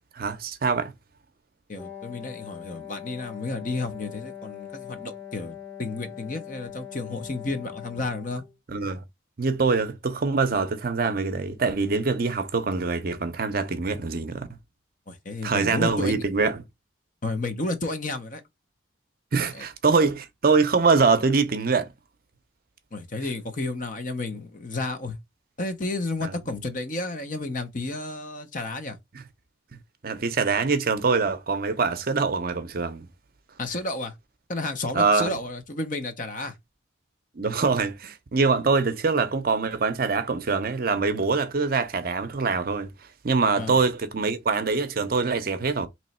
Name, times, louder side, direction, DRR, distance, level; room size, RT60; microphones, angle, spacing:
voice 1, 0.2-0.9 8.7-9.0 9.4-14.5 15.4-16.6 19.3-21.9 26.2-26.3 30.0-33.1 34.9-35.3 37.4-42.9 43.2-45.9, right 4 dB, 50° right, 0.6 m, -24 dB
voice 2, 1.7-8.4 15.1-16.2 17.2-18.4 19.5-19.7 22.9-25.2 25.6-29.0 33.6-34.1 34.5-36.5 43.6-43.8, left 2 dB, 40° left, 0.7 m, -32 dB
Wind instrument woodwind instrument, 1.8-8.5, left 9 dB, 5° left, 0.7 m, -41 dB
3.1 x 3.0 x 4.2 m
head